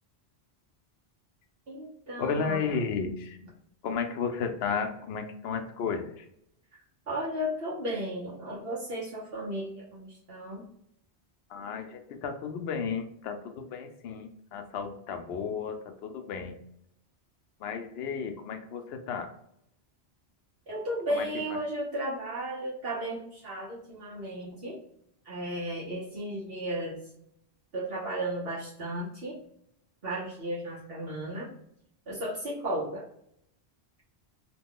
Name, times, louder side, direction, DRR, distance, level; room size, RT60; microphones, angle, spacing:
voice 1, 1.7-2.6 7.1-10.6 20.7-24.8 25.2-27.0 27.7-29.4 30.0-31.5 32.1-33.0, right 1 dB, 65° right, -7 dB, 1.2 m, -34 dB
voice 2, 2.2-3.4 3.8-6.3 11.5-16.6 17.6-19.3 21.1-21.6, left 6 dB, 75° left, 6 dB, 0.8 m, -33 dB
2.9 x 2.2 x 3.6 m, 0.73 s
omnidirectional pair, 1.1 m